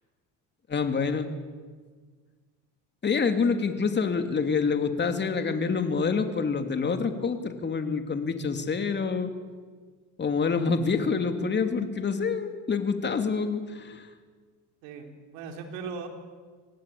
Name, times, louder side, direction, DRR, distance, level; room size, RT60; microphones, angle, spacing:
voice 1, 0.7-1.3 3.0-9.3 10.2-14.1, left 5 dB, 30° left, 7 dB, 2.9 m, -27 dB
voice 2, 14.8-16.1, right 5 dB, 85° right, 4 dB, 4.0 m, -38 dB
26.0 x 18.5 x 8.6 m, 1.5 s
supercardioid pair, 95°, 35 cm